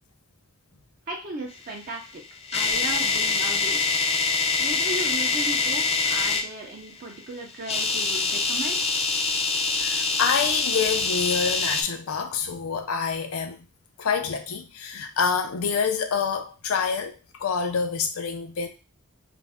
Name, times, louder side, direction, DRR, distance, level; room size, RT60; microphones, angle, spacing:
voice 1, 1.1-2.2 2.5-4.0 4.6-8.9, right 2 dB, 45° right, 0.5 m, -36 dB
sound 1, 2.0-6.5 7.6-11.8, left 4 dB, 30° left, 0.3 m, -25 dB
voice 2, 9.8-13.7 14.0-18.7, left 6 dB, 90° left, 0.5 m, -27 dB
2.5 x 2.1 x 3.4 m
head